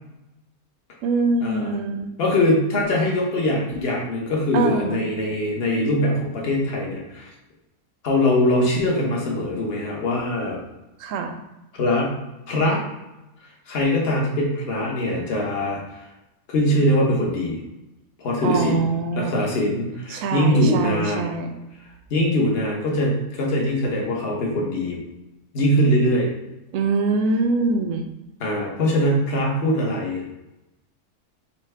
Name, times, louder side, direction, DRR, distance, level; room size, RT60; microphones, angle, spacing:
voice 1, 1.0-2.1 4.5-5.0 11.0-11.4 18.4-19.3 20.1-21.6 26.7-28.0, right 3 dB, 70° right, 6 dB, 0.9 m, -23 dB
voice 2, 2.2-7.3 8.0-10.6 11.7-12.2 12.5-12.8 13.7-16.1 16.5-17.6 18.2-18.9 19.2-21.3 22.1-25.0 25.5-26.3 28.4-30.2, left 1 dB, 45° left, -3 dB, 1.1 m, -22 dB
5.6 x 2.2 x 3.3 m, 0.97 s
omnidirectional pair, 1.6 m